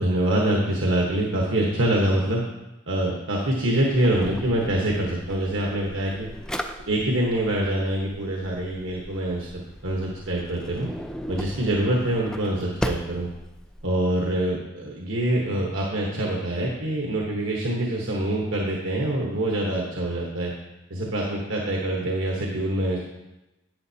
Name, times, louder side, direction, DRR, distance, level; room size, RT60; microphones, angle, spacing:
voice 1, 0.0-2.4 2.9-6.3 6.9-9.5 9.8-10.9 11.3-13.3 13.8-20.5 20.9-23.0, right 1 dB, 75° right, -2 dB, 1.1 m, -25 dB
Drawer open or close, 3.9-13.9, equal, 5° left, 0.4 m, -37 dB
10.5 x 8.5 x 2.8 m, 0.99 s
head